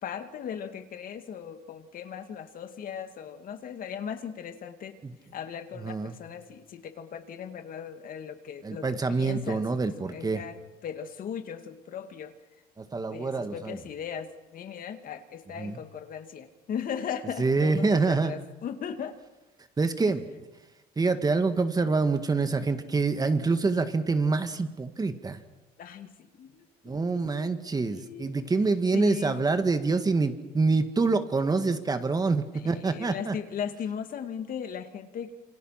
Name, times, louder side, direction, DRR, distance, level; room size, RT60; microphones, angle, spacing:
voice 1, 0.0-5.0 5.3-12.3 13.1-19.2 25.8-28.3 28.9-29.4 32.5-35.3, left 8 dB, 55° left, 8 dB, 2.3 m, -38 dB
voice 2, 5.8-6.2 8.6-10.4 12.8-13.8 15.6-15.8 17.4-18.4 19.8-20.3 21.0-25.4 26.8-33.4, right 3 dB, 20° right, 8 dB, 1.9 m, -26 dB
27.5 x 25.5 x 5.9 m, 1.1 s
cardioid pair, 110°, 17 cm